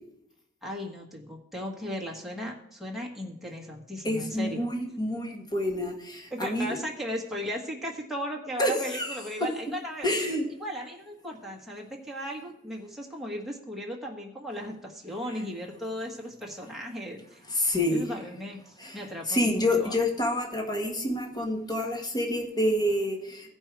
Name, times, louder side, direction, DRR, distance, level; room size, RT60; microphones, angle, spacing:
voice 1, 0.6-4.7 6.3-17.4 17.9-19.9, equal, ahead, -2 dB, 1.4 m, -36 dB
voice 2, 4.0-6.7 8.6-9.2 10.0-10.4 17.5-18.1 18.8-19.0 19.3-23.5, left 1 dB, 20° left, 2 dB, 1.5 m, -28 dB
16.0 x 5.4 x 4.6 m, 0.80 s
head